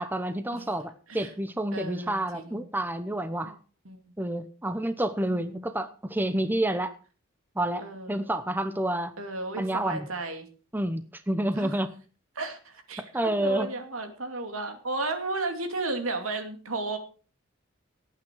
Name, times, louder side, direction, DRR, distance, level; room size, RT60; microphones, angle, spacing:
voice 1, 0.0-3.6 4.2-6.9 7.6-9.1 9.6-10.1 10.7-11.9 13.1-13.7, right 1 dB, 10° right, 10 dB, 0.8 m, -29 dB
voice 2, 1.7-2.6 3.4-3.5 3.8-4.0 5.2-5.6 7.8-8.2 9.2-10.5 11.5-11.7 12.4-17.0, right 2 dB, 85° right, 6 dB, 2.6 m, -34 dB
17.5 x 8.9 x 4.6 m, 0.38 s
head